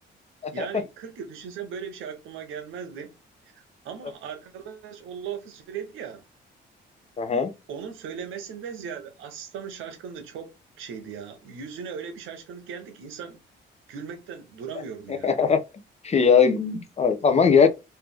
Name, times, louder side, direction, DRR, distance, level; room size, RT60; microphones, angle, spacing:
voice 1, 0.5-3.1 3.4-6.2 7.7-13.4 13.9-15.3, right 7 dB, 85° right, 1.0 m, -38 dB
voice 2, 7.2-7.5 15.2-15.6 16.0-17.7, left 6 dB, 35° left, 0.8 m, -20 dB
3.4 x 2.7 x 3.5 m
cardioid pair, 90°, 20 cm